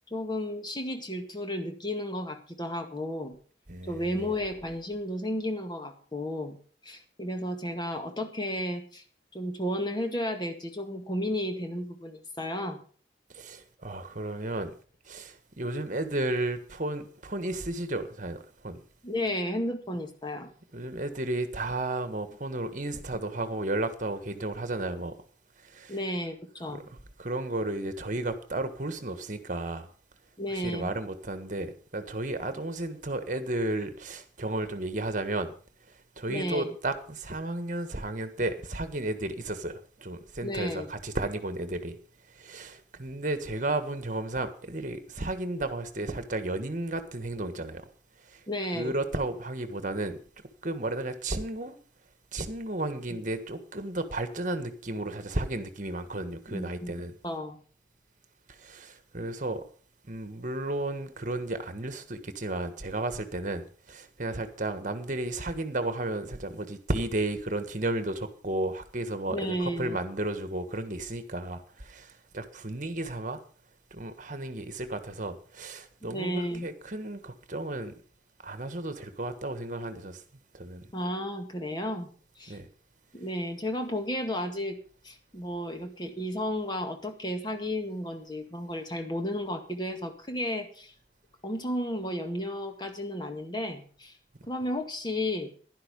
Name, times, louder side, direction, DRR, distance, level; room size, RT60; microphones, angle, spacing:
voice 1, 0.1-3.4 3.9-6.6 6.8-9.0 9.3-12.8 19.0-20.5 25.9-26.8 30.4-30.9 36.3-36.7 40.4-40.9 48.5-48.9 56.5-56.9 57.2-57.6 69.3-70.0 76.0-76.7 80.9-82.1 82.4-82.6 83.1-84.8 85.0-90.9 91.4-94.2 94.5-95.5, left 1 dB, 25° left, 2.0 m, -33 dB
voice 2, 3.7-4.3 13.3-14.7 15.0-18.8 20.7-25.2 25.6-26.0 26.7-29.9 30.5-35.5 36.2-42.0 42.3-47.9 48.2-48.4 48.7-50.2 50.6-51.8 52.3-57.1 58.5-59.6 60.1-73.4 73.9-78.0 78.4-80.2 80.5-80.9 82.5-82.7, right 2 dB, 45° right, 1.5 m, -33 dB
11.5 x 11.0 x 5.4 m
head